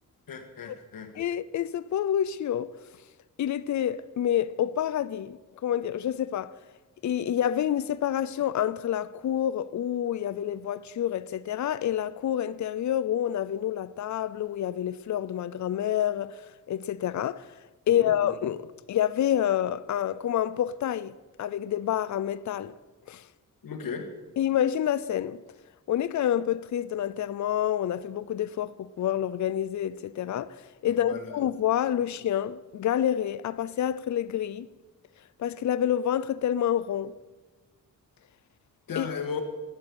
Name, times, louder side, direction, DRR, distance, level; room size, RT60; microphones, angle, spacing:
voice 1, 0.3-1.1 18.0-18.1 23.6-24.1 30.9-31.3 38.9-39.4, left 6 dB, 85° left, 2.1 m, -36 dB
voice 2, 1.1-2.7 3.4-6.5 7.0-17.5 17.9-22.7 23.1-23.2 24.4-25.4 25.9-34.7 35.4-37.1 39.0-39.1, left 10 dB, 60° left, 0.6 m, -28 dB
13.5 x 11.0 x 8.8 m
wide cardioid pair, 170°, 33 cm